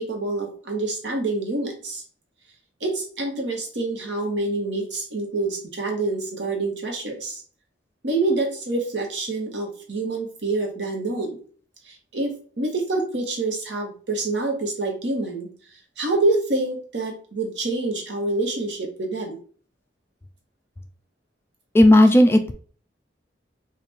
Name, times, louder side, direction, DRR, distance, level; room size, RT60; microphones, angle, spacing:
voice 1, 0.0-2.0 2.8-7.4 8.0-11.4 11.9-15.5 16.0-19.4, right 2 dB, 80° right, 2 dB, 1.1 m, -26 dB
voice 2, 21.7-22.5, left 1 dB, 15° left, 6 dB, 0.3 m, -13 dB
3.3 x 2.5 x 4.3 m, 0.42 s
head